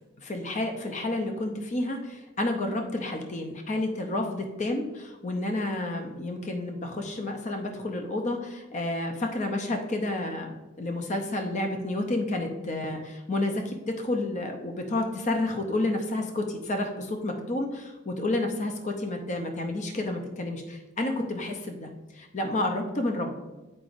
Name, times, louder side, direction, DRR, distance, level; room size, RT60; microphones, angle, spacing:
voice 1, 0.2-23.3, left 2 dB, 35° left, 4 dB, 0.6 m, -30 dB
8.7 x 4.9 x 2.6 m, 1.1 s
head